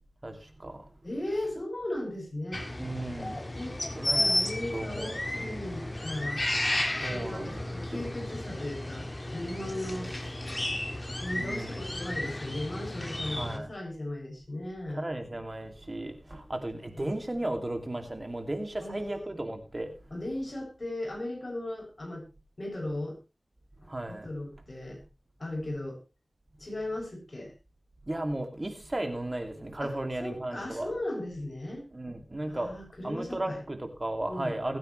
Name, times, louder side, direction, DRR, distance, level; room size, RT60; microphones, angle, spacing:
voice 1, 0.2-0.9 2.8-3.5 4.0-4.3 4.7-5.2 7.0-7.6 7.9-8.1 11.0-11.1 11.4-11.8 13.3-13.7 14.9-19.9 23.8-24.3 28.1-30.9 31.9-32.8 33.0-34.8, right 1 dB, 40° right, 2.6 m, -35 dB
voice 2, 1.0-2.6 3.6-3.7 4.1-6.4 7.1-10.1 11.2-15.0 16.9-17.1 18.8-19.2 20.1-22.2 22.6-23.2 23.8-25.0 25.4-26.0 26.6-27.5 29.8-29.9 30.2-31.8 32.5-33.6 34.3-34.6, left 1 dB, 50° left, 7.0 m, -37 dB
sound 1, 2.5-13.6, left 1 dB, 35° left, 2.1 m, -33 dB
21.5 x 8.9 x 3.2 m
wide cardioid pair, 40°, 0 cm